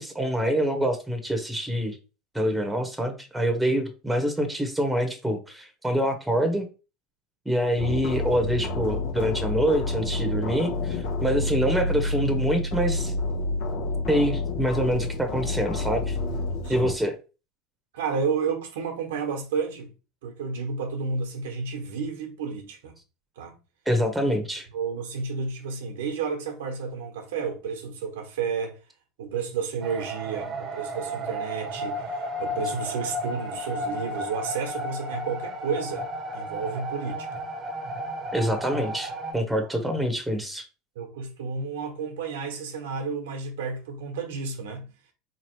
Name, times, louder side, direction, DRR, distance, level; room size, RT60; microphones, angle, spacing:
voice 1, 0.0-2.0 2.3-6.7 7.4-13.1 14.1-16.2 16.7-17.1 23.9-24.7 38.3-40.6, equal, 5° right, 1.0 m, -26 dB
sound 1, 7.8-16.9, left 2 dB, 70° left, 0.9 m, -29 dB
voice 2, 17.9-19.9 20.2-22.9 23.4-23.6 24.7-28.8 29.2-36.1 36.3-37.3 41.0-44.9, right 5 dB, 85° right, 0.9 m, -31 dB
sound 2, 29.8-39.3, equal, 35° right, 0.8 m, -33 dB
4.0 x 2.9 x 3.0 m
supercardioid pair, 110°, 0 cm